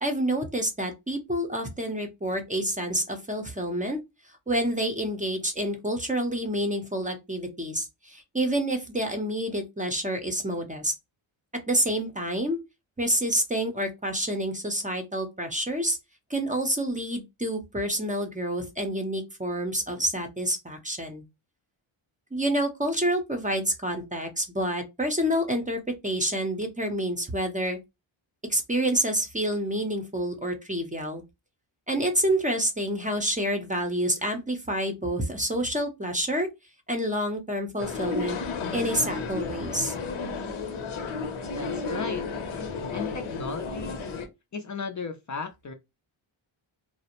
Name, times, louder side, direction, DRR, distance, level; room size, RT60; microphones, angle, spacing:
voice 1, 0.0-4.0 4.5-10.9 11.7-12.6 13.0-16.0 16.3-21.2 22.3-27.8 28.5-31.2 31.9-36.5 36.9-38.4 38.7-39.9, right 1 dB, 15° right, 0.5 m, -28 dB
sound 1, 37.8-44.3, left 4 dB, 75° left, 0.8 m, -32 dB
voice 2, 41.5-42.3 42.9-44.0 44.5-45.7, left 4 dB, 40° left, 0.4 m, -35 dB
2.4 x 2.0 x 2.8 m
wide cardioid pair, 95°, 48 cm